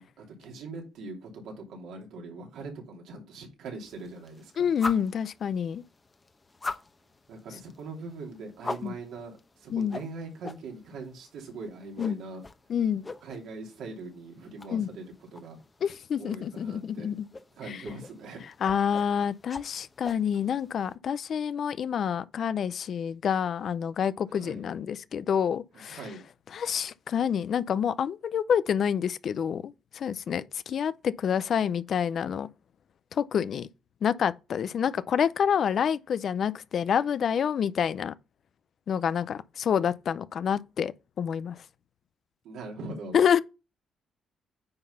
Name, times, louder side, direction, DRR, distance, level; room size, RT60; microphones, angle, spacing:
voice 1, 0.0-4.7 7.3-12.4 13.2-15.1 15.3-15.6 16.2-17.1 17.6-18.4 24.3-24.6 25.9-26.2 42.4-43.2, right 3 dB, 80° right, 3.0 m, -41 dB
sound 1, 3.8-20.9, left 3 dB, 25° left, 0.9 m, -44 dB
voice 2, 4.6-5.8 8.8-8.9 9.7-10.0 12.0-12.2 12.7-13.1 14.7-14.9 15.8-17.3 17.7-17.8 18.6-26.1 26.5-32.5 33.1-33.7 34.0-38.1 38.9-41.6 43.1-43.4, left 8 dB, 60° left, 0.5 m, -28 dB
9.6 x 4.0 x 5.5 m
cardioid pair, 90°, 0 cm